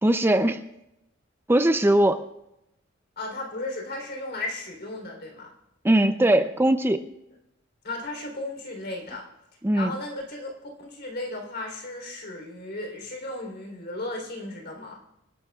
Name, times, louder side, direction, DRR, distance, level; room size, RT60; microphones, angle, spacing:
voice 1, 0.0-0.6 1.5-2.2 5.8-7.0 9.6-9.9, right 1 dB, 10° right, 8 dB, 0.5 m, -20 dB
voice 2, 3.2-5.5 7.8-9.2 9.7-15.0, left 2 dB, 55° left, 2 dB, 3.5 m, -35 dB
27.0 x 12.0 x 2.4 m, 0.86 s
head